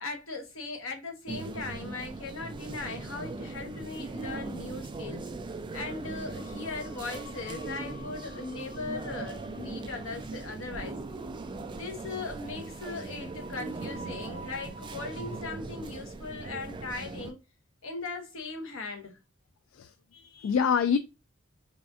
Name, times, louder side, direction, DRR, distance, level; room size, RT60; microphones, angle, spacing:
voice 1, 0.0-5.3 5.7-11.0 11.7-17.4 17.8-19.2, left 3 dB, 90° left, 1.0 m, -39 dB
sound 1, 1.3-17.3, right 3 dB, 25° right, 0.3 m, -39 dB
sound 2, 3.6-4.2 4.4-4.7 5.9-15.4, equal, 45° left, 0.8 m, -51 dB
voice 2, 19.7-21.0, left 6 dB, 75° left, 0.3 m, -27 dB
5.0 x 2.5 x 2.3 m
head